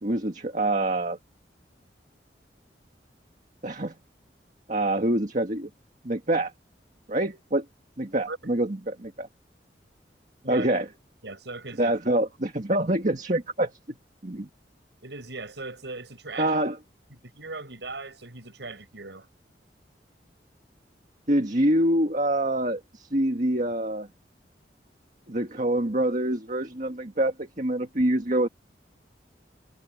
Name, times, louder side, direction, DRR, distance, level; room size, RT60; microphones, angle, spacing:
voice 1, 0.0-1.2 3.6-3.9 4.7-5.7 6.0-6.5 7.1-7.6 8.0-9.3 10.5-10.9 11.8-13.7 14.2-14.5 16.4-16.8 21.3-24.1 25.3-28.5, right 1 dB, 45° right, 1.8 m, -25 dB
voice 2, 11.2-11.9 15.0-16.6 17.1-19.3, right 3 dB, 80° right, 5.5 m, -38 dB
head